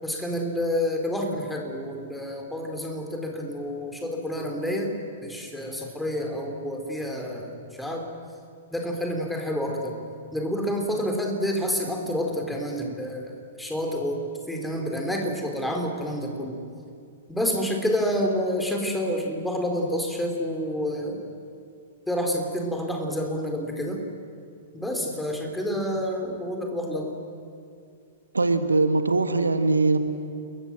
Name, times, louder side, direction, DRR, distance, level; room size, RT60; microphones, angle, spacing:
voice 1, 0.0-8.1 8.7-10.0 10.3-13.3 13.6-16.6 17.3-21.2 22.1-24.0 24.7-27.1, equal, 5° left, 2 dB, 4.3 m, -28 dB
voice 2, 28.3-30.0, right 3 dB, 80° right, 9 dB, 1.6 m, -21 dB
29.0 x 22.5 x 7.6 m, 2.4 s
figure-of-eight pair, 105°, 0 cm